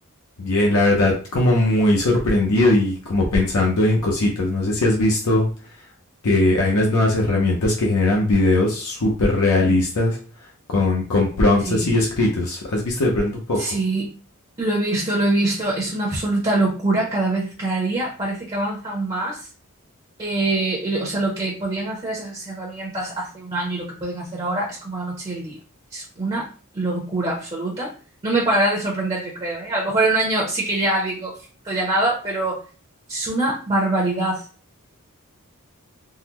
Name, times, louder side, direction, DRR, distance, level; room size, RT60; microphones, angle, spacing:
voice 1, 0.4-5.5 6.2-10.2 10.7-13.8, left 2 dB, 75° left, -1 dB, 0.6 m, -19 dB
voice 2, 13.6-14.1 14.6-19.5 20.2-25.6 25.9-26.5 26.7-27.9 28.2-31.3 31.6-32.6 33.1-34.4, right 2 dB, 25° right, -2 dB, 0.7 m, -24 dB
3.8 x 2.1 x 2.9 m, 0.38 s
head